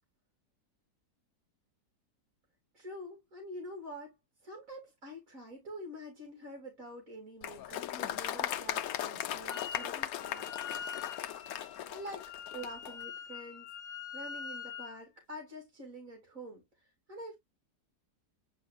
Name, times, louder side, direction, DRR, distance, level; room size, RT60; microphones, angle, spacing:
voice 1, 2.7-10.8 11.9-17.4, equal, 55° right, 3.0 m, -47 dB
Applause, 7.4-12.9, left 11 dB, 70° left, 1.1 m, -38 dB
Wind instrument woodwind instrument, 9.5-9.9 10.1-15.0, left 7 dB, 55° left, 1.3 m, -44 dB
8.7 x 4.7 x 2.4 m
omnidirectional pair, 1.7 m